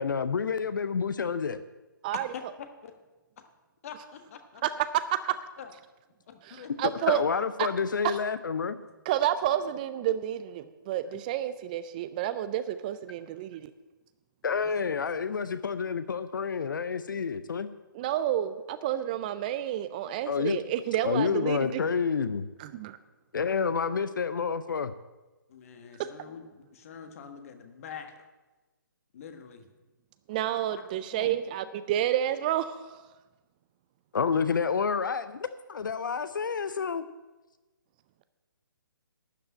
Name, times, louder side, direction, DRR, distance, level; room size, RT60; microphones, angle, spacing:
voice 1, 0.0-1.6 7.1-8.8 14.4-17.7 20.3-20.6 21.0-22.5 23.3-24.9 34.1-37.0, left 6 dB, 65° left, 13 dB, 0.6 m, -29 dB
voice 2, 3.8-4.6 5.6-5.7 6.3-7.2 14.4-14.7 15.8-15.9 25.5-28.2 29.1-29.7 30.7-30.8 31.1-31.3, left 7 dB, 40° left, 6 dB, 1.4 m, -45 dB
voice 3, 6.5-7.2 7.6-7.7 8.0-8.2 9.1-13.7 17.9-21.8 22.6-23.0 26.0-26.1 30.3-33.1, right 12 dB, 25° right, 13 dB, 0.4 m, -30 dB
12.0 x 5.5 x 8.5 m, 1.2 s
figure-of-eight pair, 140°, 11 cm